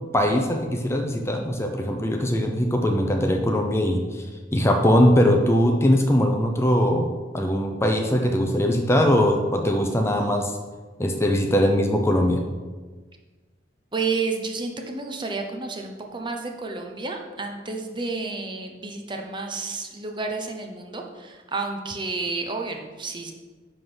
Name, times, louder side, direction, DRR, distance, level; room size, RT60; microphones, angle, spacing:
voice 1, 0.1-4.2 4.5-10.5 11.0-12.4, equal, 15° left, 3 dB, 0.6 m, -21 dB
voice 2, 13.9-23.3, right 3 dB, 25° right, 3 dB, 0.9 m, -31 dB
10.5 x 3.8 x 6.1 m, 1.4 s
head